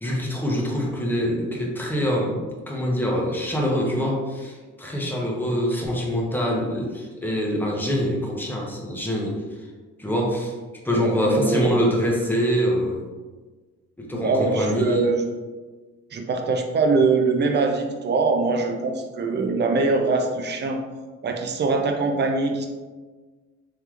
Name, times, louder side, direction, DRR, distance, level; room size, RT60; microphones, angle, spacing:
voice 1, 0.0-2.4 2.7-9.4 10.0-10.5 10.8-13.1 14.0-15.0, equal, 5° left, -2 dB, 0.8 m, -24 dB
voice 2, 10.9-11.8 14.2-15.2 16.1-20.8 21.2-22.7, right 3 dB, 35° right, 3 dB, 0.5 m, -23 dB
3.2 x 3.0 x 2.4 m, 1.3 s
cardioid pair, 90°, 30 cm